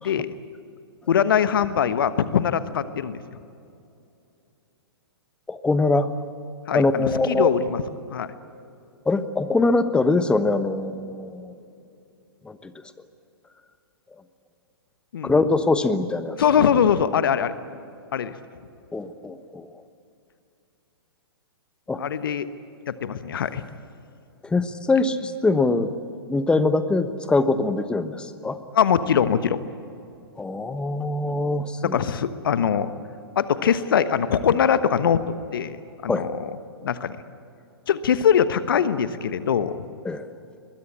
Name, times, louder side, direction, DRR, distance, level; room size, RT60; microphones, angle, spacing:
voice 1, 0.0-0.3 1.1-3.2 6.7-7.8 8.1-8.3 15.1-15.3 16.4-17.5 18.1-18.3 22.0-22.5 22.9-23.6 28.7-29.6 31.8-32.9 33.3-35.2 35.5-36.5 36.8-37.2 37.9-39.8, left 8 dB, 60° left, 12 dB, 1.2 m, -22 dB
voice 2, 5.5-6.1 6.7-7.5 9.0-11.5 12.4-12.7 15.2-16.4 18.9-19.7 21.9-22.0 24.4-25.9 26.3-28.6 30.4-32.0 36.1-36.3 40.0-40.3, left 3 dB, 5° left, 11 dB, 1.2 m, -23 dB
23.5 x 21.5 x 8.7 m, 2.7 s
figure-of-eight pair, 115°, 13 cm